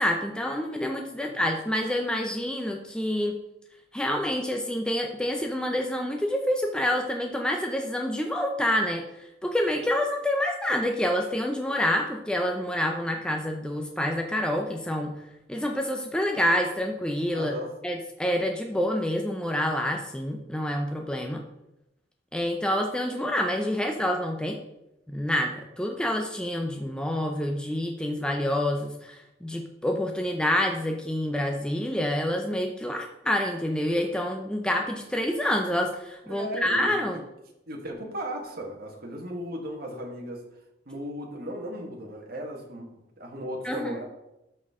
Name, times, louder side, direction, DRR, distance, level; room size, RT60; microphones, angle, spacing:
voice 1, 0.0-3.3 3.9-15.1 15.5-17.5 17.8-21.4 22.3-24.6 25.1-37.2 43.6-43.9, left 1 dB, 5° left, 2 dB, 0.5 m, -27 dB
voice 2, 1.1-1.5 17.3-17.7 36.2-37.2 37.7-40.4 40.9-42.9 43.2-44.0, equal, 55° right, 1 dB, 1.7 m, -36 dB
12.5 x 4.4 x 3.7 m, 0.89 s
head